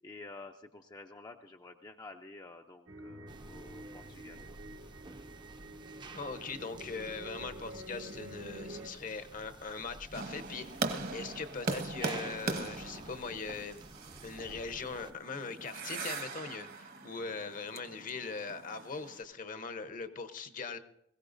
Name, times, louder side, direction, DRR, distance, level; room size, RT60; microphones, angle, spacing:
voice 1, 0.0-4.4, left 3 dB, 25° left, 3 dB, 0.5 m, -50 dB
sound 1, 2.9-8.9, right 1 dB, 75° right, 1.4 m, -48 dB
sound 2, 3.3-15.1, right 3 dB, 25° right, 0.6 m, -50 dB
voice 2, 6.1-13.9 14.2-20.8, left 4 dB, 45° left, 10 dB, 0.8 m, -41 dB
sound 3, 10.1-19.2, right 3 dB, 55° right, 1.3 m, -40 dB
22.0 x 16.0 x 2.6 m, 0.78 s
head